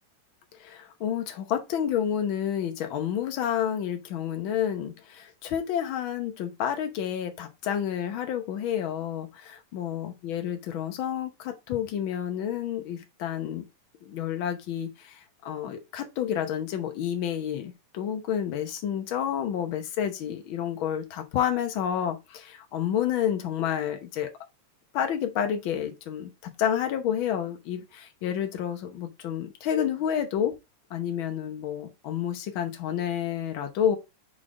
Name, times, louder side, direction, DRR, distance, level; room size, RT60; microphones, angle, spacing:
voice 1, 0.6-13.6 14.0-15.1 15.4-24.3 24.9-26.3 26.6-30.5 30.9-34.0, left 9 dB, 70° left, 1.2 m, -29 dB
5.0 x 4.0 x 4.9 m
omnidirectional pair, 3.4 m